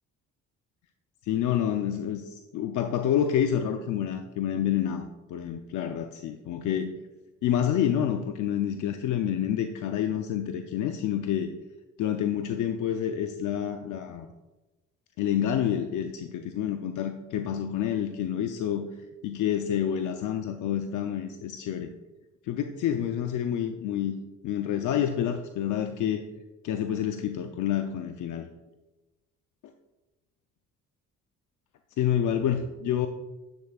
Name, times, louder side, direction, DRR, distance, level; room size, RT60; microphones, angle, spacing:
voice 1, 1.3-6.9 7.4-11.5 12.0-14.3 15.2-18.9 19.2-21.9 22.4-24.1 24.4-26.2 26.6-28.5 32.0-33.1, left 9 dB, 80° left, 6 dB, 0.6 m, -28 dB
10.5 x 10.5 x 2.4 m, 1.1 s
cardioid pair, 90°, 30 cm